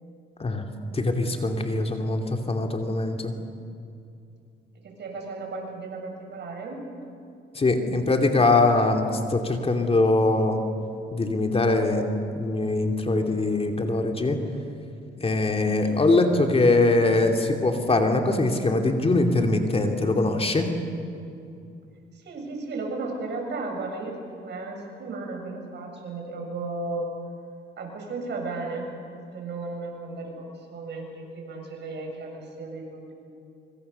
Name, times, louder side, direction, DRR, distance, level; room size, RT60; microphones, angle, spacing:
voice 1, 0.9-3.3 7.5-10.6 11.1-12.1 12.3-14.4 15.2-20.7, left 2 dB, 30° left, 4 dB, 2.6 m, -22 dB
voice 2, 4.8-6.8 15.5-15.9 22.1-27.1 27.8-28.9 29.3-33.1, right 3 dB, 60° right, 1 dB, 6.8 m, -35 dB
25.0 x 25.0 x 6.9 m, 2.5 s
cardioid pair, 90°, 20 cm